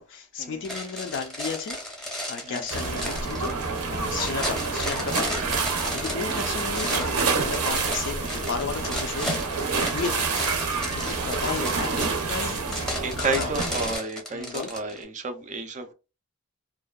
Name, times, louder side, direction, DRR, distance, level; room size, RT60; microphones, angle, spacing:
voice 1, 0.0-1.8 2.3-5.5 5.9-12.8 13.2-13.5 14.3-14.7, left 5 dB, 55° left, 0.3 m, -34 dB
sound 1, 0.6-15.0, left 1 dB, ahead, 0.6 m, -34 dB
sound 2, 2.7-14.0, right 4 dB, 90° right, 0.7 m, -28 dB
voice 2, 5.8-6.2 11.0-11.7 13.0-15.9, right 3 dB, 35° right, 0.3 m, -32 dB
2.5 x 2.2 x 2.2 m
head